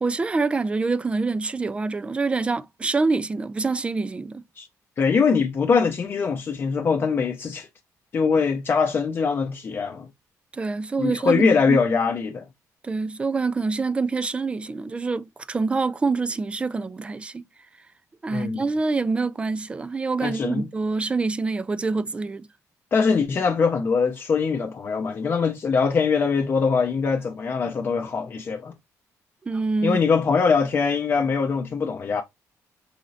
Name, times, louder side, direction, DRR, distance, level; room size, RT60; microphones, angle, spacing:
voice 1, 0.0-4.4 10.5-11.8 12.8-17.5 18.2-22.5 29.4-30.0, right 3 dB, 20° right, 0.3 m, -26 dB
voice 2, 5.0-7.7 8.1-10.1 11.0-12.5 18.3-18.6 20.2-20.7 22.9-28.7 29.8-32.2, left 5 dB, 40° left, 0.6 m, -22 dB
4.9 x 3.1 x 2.6 m
cardioid pair, 135°, 6 cm